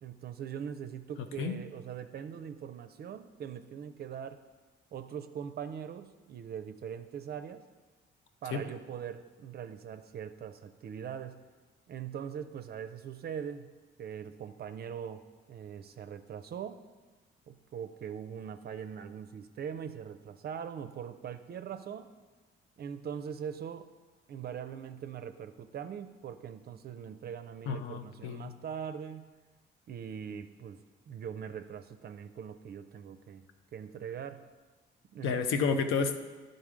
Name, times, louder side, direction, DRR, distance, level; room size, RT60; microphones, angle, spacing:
voice 1, 0.0-4.4 4.9-7.6 8.4-11.4 11.9-13.7 14.0-16.8 17.5-22.1 22.8-23.9 24.3-29.3 29.9-33.4 33.7-34.5 35.1-35.5, right 8 dB, 55° right, 9 dB, 0.4 m, -41 dB
voice 2, 27.7-28.5 35.2-36.2, left 5 dB, 90° left, 8 dB, 0.6 m, -30 dB
11.0 x 3.9 x 5.0 m, 1.3 s
cardioid pair, 90°, 20 cm